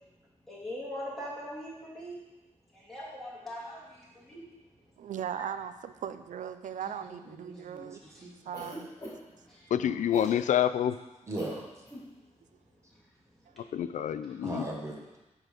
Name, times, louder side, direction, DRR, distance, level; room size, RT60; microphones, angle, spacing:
voice 1, 0.5-2.2 2.7-4.4 8.0-8.3 9.5-9.7 10.2-10.3, equal, ahead, -7 dB, 2.5 m, -41 dB
voice 2, 5.0-8.0 8.4-8.9 14.0-14.1, right 9 dB, 85° right, 12 dB, 0.5 m, -38 dB
voice 3, 7.3-8.3 9.8-10.0 11.3-11.6 14.4-15.2, right 1 dB, 25° right, -1 dB, 1.4 m, -39 dB
Cough, 8.5-9.4 10.1-10.4 11.3-11.6 11.8-12.1, equal, 25° left, 2.5 m, -43 dB
voice 4, 9.7-11.0 13.6-14.6, left 10 dB, 80° left, 13 dB, 0.4 m, -27 dB
8.9 x 3.9 x 6.5 m, 1.0 s
wide cardioid pair, 170°, 13 cm